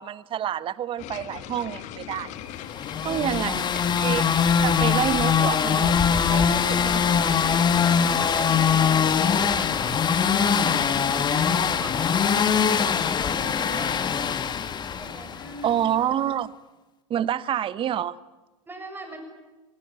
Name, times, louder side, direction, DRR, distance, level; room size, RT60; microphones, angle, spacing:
voice 1, 0.0-2.3 3.0-3.6 4.0-4.3 4.6-6.5 6.8-7.1 15.6-16.5 17.1-18.2, right 10 dB, 30° right, 1.0 m, -28 dB
sound 1, 1.0-12.1, left 11 dB, 45° left, 2.0 m, -40 dB
sound 2, 2.7-15.6, left 7 dB, 25° left, 1.7 m, -22 dB
voice 2, 3.0-3.4 6.3-9.1 9.5-12.6 13.2-14.1 14.8-15.7 18.7-19.2, right 1 dB, 10° right, 6.9 m, -41 dB
26.5 x 19.5 x 9.1 m
hypercardioid pair, 90°, 16 cm